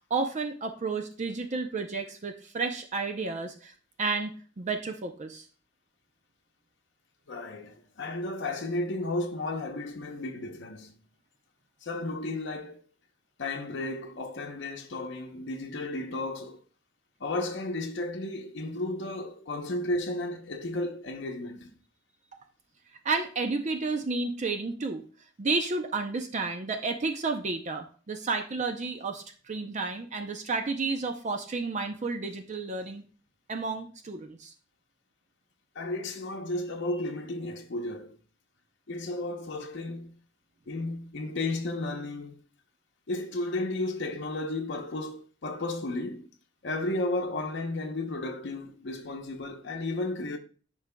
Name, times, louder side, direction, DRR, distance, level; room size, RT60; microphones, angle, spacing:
voice 1, 0.1-3.7 4.0-5.4 23.0-25.0 25.4-33.1 33.5-34.5, right 4 dB, 40° right, 0.5 m, -31 dB
voice 2, 7.3-11.0 11.8-12.8 13.4-16.6 17.2-21.7 35.7-38.2 38.9-40.2 40.7-42.4 43.1-46.3 46.6-50.4, left 2 dB, 65° left, 0.7 m, -33 dB
10.5 x 4.7 x 2.2 m
head